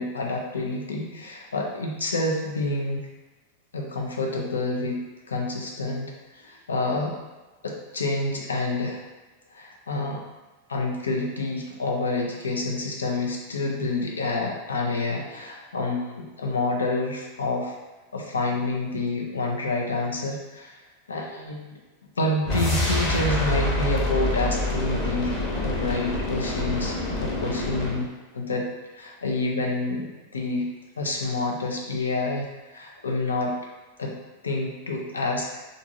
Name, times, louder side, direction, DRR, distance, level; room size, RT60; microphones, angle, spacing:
voice 1, 0.0-3.1 3.7-5.0 5.3-7.2 7.6-9.0 9.5-10.2 10.7-17.8 18.1-20.8 21.1-21.8 22.2-25.3 25.6-26.9 27.2-28.1 28.3-28.7 28.9-30.1 30.3-30.7 31.0-33.6 34.0-34.2 34.4-35.5, left 2 dB, 70° left, 0 dB, 0.7 m, -28 dB
sound 1, 22.4-28.1, left 1 dB, 35° left, 1.1 m, -26 dB
3.5 x 2.6 x 4.0 m, 1.2 s
figure-of-eight pair, 90°, 0 cm